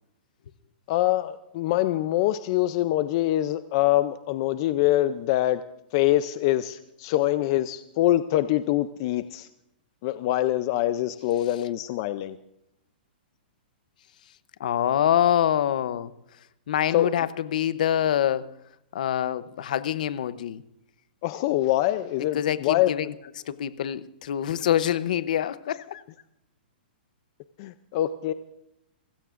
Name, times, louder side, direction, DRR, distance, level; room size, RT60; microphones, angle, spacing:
voice 1, 0.9-5.6 5.9-9.5 10.0-12.4 16.9-17.1 21.2-22.9 27.6-28.3, left 14 dB, 25° left, 0.4 m, -24 dB
voice 2, 14.6-16.1 16.7-18.5 18.9-20.6 22.3-23.1 23.5-26.0, left 10 dB, 50° left, 0.7 m, -25 dB
29.5 x 16.0 x 2.5 m
hypercardioid pair, 175°, 6 cm